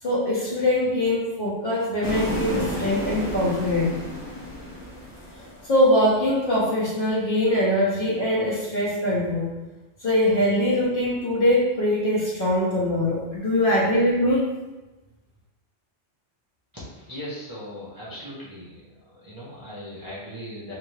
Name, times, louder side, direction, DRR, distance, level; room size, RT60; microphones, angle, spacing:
voice 1, 0.0-4.0 5.6-9.5 10.0-14.5, left 1 dB, 50° left, -6 dB, 1.0 m, -22 dB
sound 1, 2.0-6.3, equal, 15° left, 0.6 m, -32 dB
voice 2, 17.1-18.8 19.2-20.7, equal, 20° right, -9 dB, 0.8 m, -38 dB
3.3 x 2.8 x 3.2 m, 1.1 s
omnidirectional pair, 1.2 m